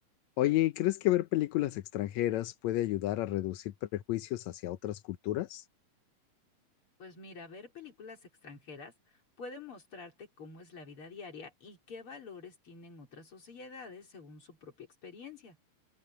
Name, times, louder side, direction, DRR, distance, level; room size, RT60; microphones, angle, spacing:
voice 1, 0.4-5.6, left 15 dB, 75° left, 1.8 m, -31 dB
voice 2, 7.0-8.9 9.4-15.6, left 4 dB, 40° left, 4.6 m, -48 dB
omnidirectional pair, 3.9 m